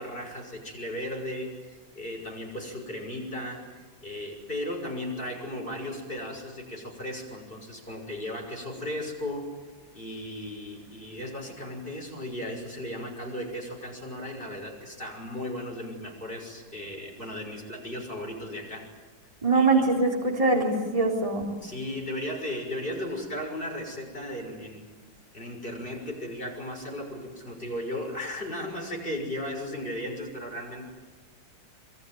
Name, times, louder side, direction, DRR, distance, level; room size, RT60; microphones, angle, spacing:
voice 1, 0.0-3.7 4.0-9.6 9.9-18.9 19.5-19.8 21.6-24.9 25.3-30.8, left 1 dB, 25° left, 1 dB, 6.7 m, -36 dB
voice 2, 19.4-21.4, right 3 dB, 15° right, 0 dB, 4.0 m, -23 dB
27.5 x 23.0 x 9.4 m, 1.2 s
omnidirectional pair, 2.0 m